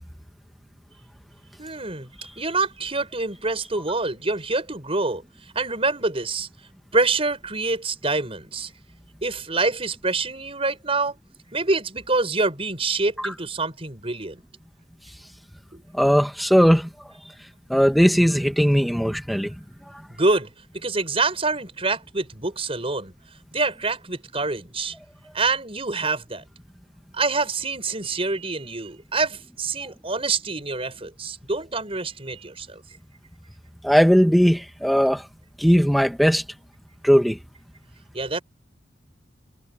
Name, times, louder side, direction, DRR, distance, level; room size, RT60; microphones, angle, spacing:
voice 1, 1.6-2.1 2.4-5.2 5.5-6.5 6.9-8.7 9.2-11.1 11.5-14.4 15.7-15.8 20.1-20.5 20.8-23.1 23.5-24.9 25.3-26.4 27.1-32.8 38.1-38.4, right 3 dB, 35° right, 6.3 m, -26 dB
voice 2, 15.9-16.9 17.7-19.6 33.8-35.2 35.6-36.4 37.0-37.4, equal, ahead, 2.2 m, -18 dB
head